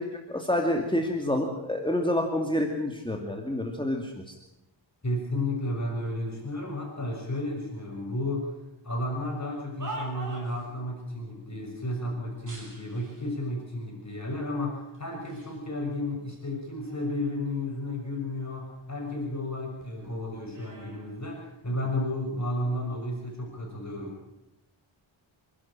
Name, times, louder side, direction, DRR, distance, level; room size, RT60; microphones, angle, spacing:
voice 1, 0.0-4.3, left 1 dB, 10° left, 2 dB, 2.4 m, -28 dB
voice 2, 5.0-8.5 8.8-24.2, left 1 dB, 35° left, -1 dB, 6.2 m, -32 dB
sound 1, 9.7-10.7 12.4-13.3 14.1-14.2 14.9-15.6 16.0-17.5 17.9-19.5 19.8-21.9 22.7-23.0, right 1 dB, 40° right, 6.6 m, -45 dB
27.5 x 11.5 x 8.9 m, 0.86 s
wide cardioid pair, 105°, 48 cm